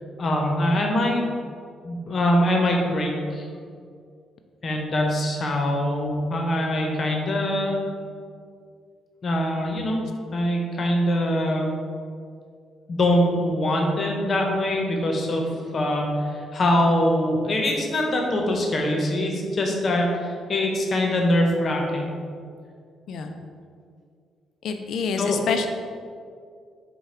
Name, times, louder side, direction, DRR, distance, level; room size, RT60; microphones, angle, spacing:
voice 1, 0.2-1.2 1.8-3.5 4.6-7.8 9.2-10.0 10.3-11.7 12.9-15.5 15.7-22.1 25.2-25.4, left 1 dB, 45° left, 1 dB, 0.8 m, -23 dB
voice 2, 24.6-25.7, left 6 dB, 70° left, 6 dB, 0.4 m, -27 dB
4.9 x 2.2 x 4.3 m, 2.2 s
cardioid pair, 90°, 0 cm